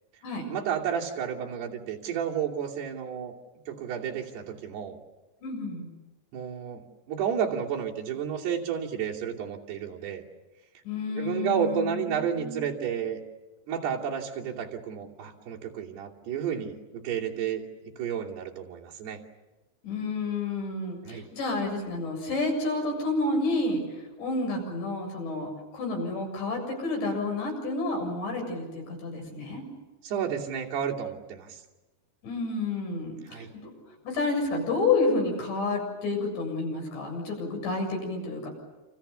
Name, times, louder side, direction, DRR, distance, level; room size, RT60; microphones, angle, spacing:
voice 1, 0.5-3.3 3.7-5.0 6.3-6.8 7.1-10.2 11.2-13.2 13.7-17.6 18.0-19.2 21.0-21.3 30.0-31.6 33.3-33.5, right 8 dB, 70° right, -2 dB, 4.9 m, -31 dB
voice 2, 5.4-5.9 10.9-12.6 19.8-29.6 32.2-33.7 34.0-38.5, left 3 dB, 80° left, 2 dB, 9.6 m, -30 dB
29.0 x 28.0 x 7.0 m, 1.1 s
omnidirectional pair, 5.0 m